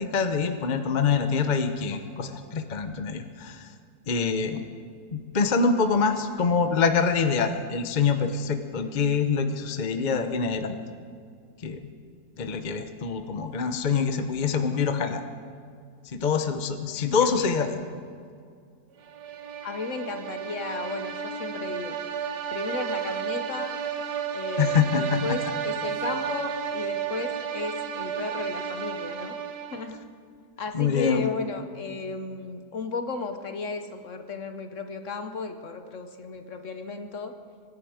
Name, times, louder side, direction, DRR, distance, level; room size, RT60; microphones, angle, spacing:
voice 1, 0.0-3.7 4.1-4.6 5.1-10.8 11.6-11.8 12.4-15.2 16.0-17.8 24.6-25.4 30.7-31.3, left 5 dB, 35° left, 7 dB, 0.8 m, -25 dB
voice 2, 17.1-17.6 19.6-22.0 22.5-23.7 24.3-29.4 29.7-30.0 30.6-37.3, left 4 dB, 55° left, 7 dB, 1.1 m, -34 dB
sound 1, 19.1-30.0, right 8 dB, 80° right, 1.6 m, -32 dB
24.5 x 11.0 x 5.0 m, 2.2 s
omnidirectional pair, 1.8 m